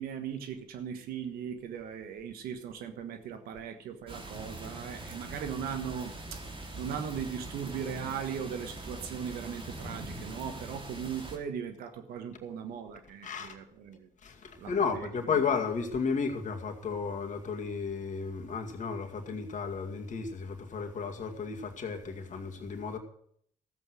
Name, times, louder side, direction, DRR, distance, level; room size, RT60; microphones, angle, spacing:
voice 1, 0.0-6.5 6.8-14.1 14.6-15.4, right 8 dB, 80° right, 1.4 m, -38 dB
sound 1, 4.1-11.4, right 2 dB, 35° right, 3.2 m, -43 dB
voice 2, 14.2-23.0, left 5 dB, 55° left, 2.2 m, -33 dB
13.5 x 8.0 x 6.3 m
supercardioid pair, 55°, 15 cm